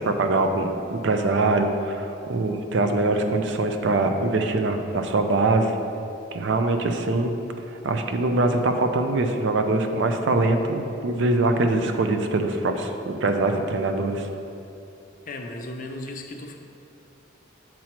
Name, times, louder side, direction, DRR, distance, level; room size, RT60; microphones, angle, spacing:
voice 1, 0.0-5.8 6.3-7.3 7.8-14.3, right 2 dB, 60° right, 6 dB, 0.4 m, -23 dB
voice 2, 15.3-16.6, left 2 dB, 40° left, 3 dB, 0.5 m, -35 dB
7.4 x 3.0 x 5.8 m, 2.7 s
head